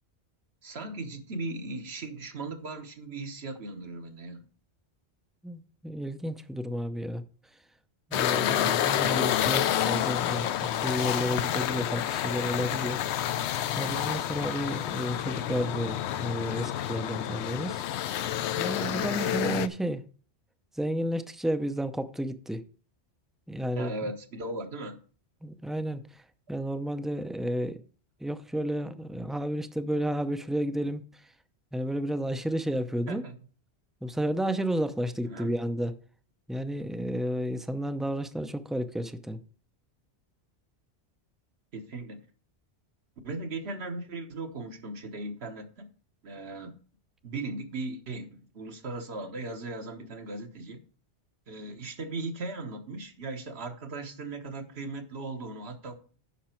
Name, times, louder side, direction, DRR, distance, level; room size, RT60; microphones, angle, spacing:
voice 1, 0.6-4.4 8.6-8.8 23.7-25.0 33.1-33.4 35.2-35.5 41.7-42.2 43.2-45.9 46.2-46.8 47.2-50.8 51.5-55.9, right 2 dB, 70° right, 1.4 m, -38 dB
voice 2, 5.4-7.2 8.1-13.0 13.8-17.8 18.6-20.0 20.8-22.6 23.5-23.9 25.4-26.2 26.5-27.8 28.2-31.0 31.7-33.2 34.0-35.9 36.5-39.4, equal, ahead, 0.4 m, -31 dB
sound 1, 8.1-19.7, left 11 dB, 80° left, 0.8 m, -29 dB
10.0 x 6.0 x 4.4 m
omnidirectional pair, 1.1 m